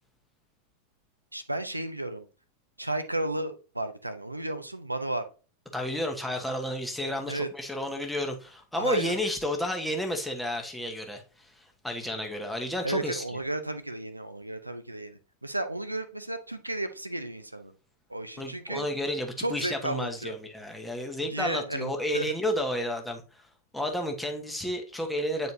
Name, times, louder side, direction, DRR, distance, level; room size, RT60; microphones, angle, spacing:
voice 1, 1.3-2.3 2.8-5.3 7.3-7.5 8.8-9.2 12.8-17.7 18.1-18.9 19.4-20.3 21.2-22.3, right 1 dB, 85° right, 0.6 m, -33 dB
voice 2, 5.7-13.2 18.4-23.4 23.7-25.5, equal, 5° left, 1.3 m, -31 dB
9.2 x 4.2 x 2.7 m
figure-of-eight pair, 90°, 0 cm